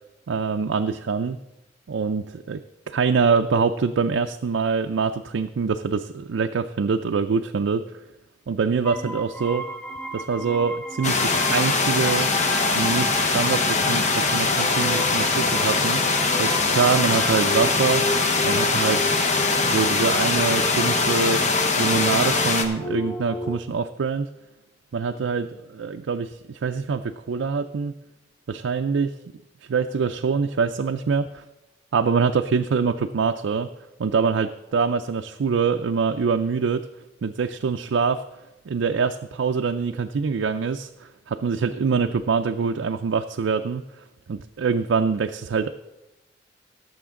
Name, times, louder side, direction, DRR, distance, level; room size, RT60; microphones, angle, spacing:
voice 1, 0.3-1.4 1.9-2.6 2.9-8.0 8.5-9.7 10.1-12.3 12.7-16.0 16.3-18.1 18.4-19.0 19.6-21.4 21.8-24.3 24.9-27.9 28.5-29.1 29.7-31.4 31.9-33.7 34.0-36.8 37.2-38.2 38.7-43.8 44.3-45.7, right 5 dB, 90° right, 6 dB, 0.4 m, -24 dB
sound 1, 8.8-23.6, left 1 dB, 10° left, 0.6 m, -33 dB
sound 2, 11.0-22.7, left 3 dB, 40° left, 0.9 m, -22 dB
17.5 x 7.1 x 3.7 m, 1.0 s
head